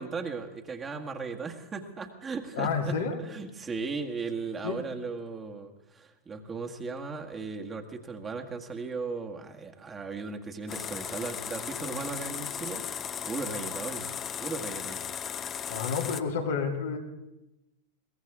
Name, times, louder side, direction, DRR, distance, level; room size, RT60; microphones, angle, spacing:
voice 1, 0.0-14.1 14.4-15.0, right 4 dB, 20° right, 2 dB, 1.8 m, -37 dB
voice 2, 2.5-3.2 4.6-4.7 15.7-17.0, left 5 dB, 75° left, 0 dB, 3.0 m, -29 dB
sound 1, 10.7-16.2, left 8 dB, 30° left, 0.8 m, -36 dB
22.0 x 17.5 x 3.6 m, 0.95 s
hypercardioid pair, 95°, 0 cm